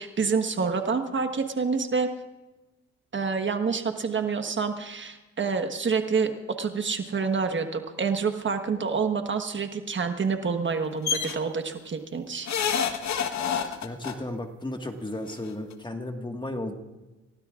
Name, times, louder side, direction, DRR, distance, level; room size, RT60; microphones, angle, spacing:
voice 1, 0.0-2.1 3.1-6.3 6.6-12.5, right 5 dB, 40° right, 6 dB, 1.4 m, -27 dB
sound 1, 11.1-11.3 12.5-14.1 15.3-15.4 15.7-15.8, left 7 dB, 65° left, 1.4 m, -27 dB
voice 2, 13.8-16.7, left 1 dB, 15° left, 4 dB, 1.7 m, -34 dB
29.0 x 16.5 x 2.5 m, 1.1 s
cardioid pair, 90°, 30 cm